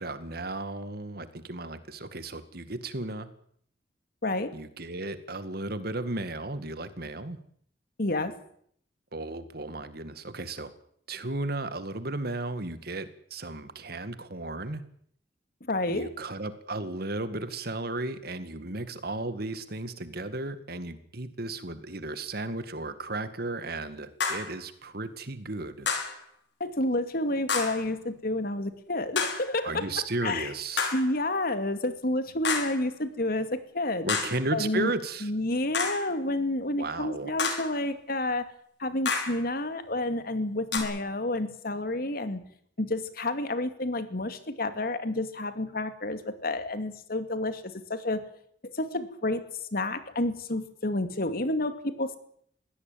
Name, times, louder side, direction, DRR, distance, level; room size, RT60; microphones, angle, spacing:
voice 1, 0.0-3.3 4.5-7.4 9.1-10.7 11.1-14.8 15.9-25.9 29.6-30.9 34.0-35.3 36.8-37.4, right 2 dB, 60° right, 11 dB, 2.1 m, -34 dB
voice 2, 4.2-4.5 8.0-8.3 15.6-16.1 26.6-29.9 30.2-30.5 30.9-34.1 34.5-34.9 35.2-38.5 38.8-42.4 42.8-48.2 48.6-49.4 49.7-52.2, left 2 dB, 55° left, 10 dB, 2.4 m, -30 dB
sound 1, 24.2-24.6 25.9-26.2 27.5-27.9 29.2-29.5 30.8-31.1 32.4-32.8 34.1-34.5 35.7-36.1 37.4-37.8 39.1-39.4 40.7-40.8, left 5 dB, 80° left, 5.3 m, -29 dB
22.5 x 17.0 x 9.3 m, 0.65 s
head